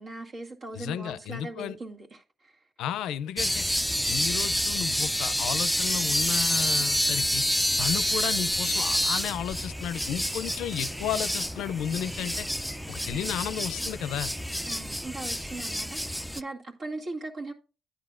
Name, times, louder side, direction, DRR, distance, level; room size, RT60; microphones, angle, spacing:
voice 1, 0.0-2.5 14.7-17.5, right 2 dB, 60° right, 2.1 m, -39 dB
voice 2, 0.7-1.8 2.8-3.6 4.0-7.4 7.8-12.5 12.9-14.3, left 9 dB, 90° left, 0.4 m, -33 dB
sound 1, 3.4-16.4, equal, ahead, 0.4 m, -28 dB
sound 2, 10.5-15.5, right 2 dB, 35° right, 1.2 m, -49 dB
10.5 x 9.0 x 2.4 m
cardioid pair, 75°, 0 cm